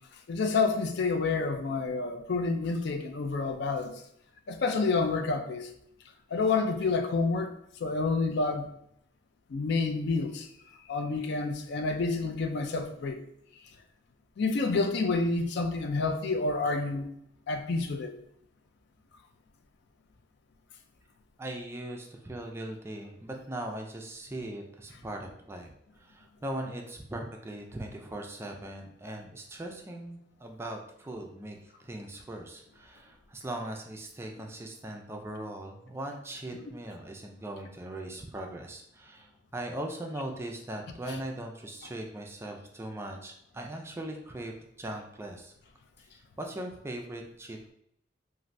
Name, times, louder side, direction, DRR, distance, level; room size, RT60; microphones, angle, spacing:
voice 1, 0.3-4.0 4.5-5.7 6.3-7.5 7.8-8.7 9.5-10.5 10.9-13.2 14.4-17.1 17.5-18.2 36.5-36.7, left 3 dB, 60° left, 0.4 m, -29 dB
voice 2, 21.4-25.7 26.0-45.5 46.1-47.7, right 1 dB, 15° right, 0.3 m, -40 dB
3.1 x 2.5 x 2.6 m
head